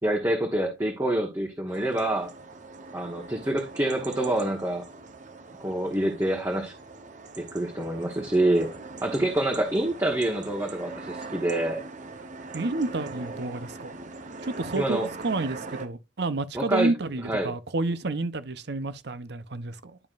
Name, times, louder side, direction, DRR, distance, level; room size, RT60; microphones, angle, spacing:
voice 1, 0.0-2.3 2.9-4.9 5.6-6.7 7.4-8.7 9.0-11.8 14.7-15.1 16.5-16.9 17.2-17.5, right 1 dB, 15° right, 1.3 m, -26 dB
sound 1, 1.7-15.9, right 3 dB, 45° right, 1.0 m, -41 dB
voice 2, 12.5-14.0 14.4-20.0, right 3 dB, 65° right, 0.8 m, -30 dB
11.0 x 5.3 x 2.5 m
head